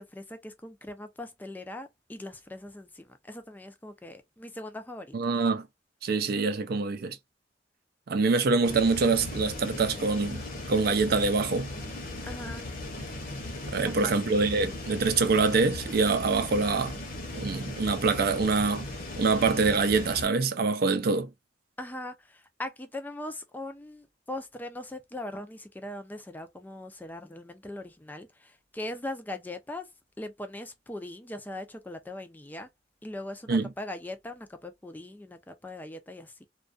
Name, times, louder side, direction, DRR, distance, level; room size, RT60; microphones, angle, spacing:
voice 1, 0.0-5.1 12.2-12.7 13.9-14.1 21.8-29.9 30.2-32.7 33.0-36.4, left 1 dB, 10° left, 0.4 m, -40 dB
voice 2, 5.1-5.7 6.0-7.2 8.1-11.7 13.7-17.0 17.3-18.9 19.2-21.3 33.5-33.7, right 4 dB, 55° right, 0.4 m, -25 dB
sound 1, 8.6-20.3, left 2 dB, 50° left, 0.8 m, -38 dB
2.3 x 2.2 x 2.4 m
head